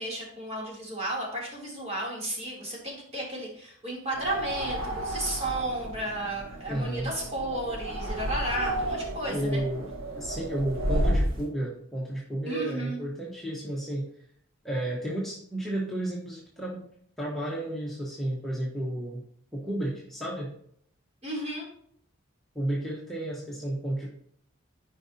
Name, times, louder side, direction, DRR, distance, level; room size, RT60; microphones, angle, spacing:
voice 1, 0.0-9.6 12.4-13.0 21.2-21.7, right 1 dB, 35° right, -3 dB, 3.1 m, -33 dB
sound 1, 4.1-11.4, right 1 dB, 85° right, 1.4 m, -32 dB
voice 2, 6.7-7.1 9.3-9.9 10.1-14.1 14.6-16.9 17.2-19.2 19.5-20.5 22.5-24.1, right 1 dB, ahead, -6 dB, 1.4 m, -32 dB
13.5 x 5.3 x 2.8 m, 0.64 s
head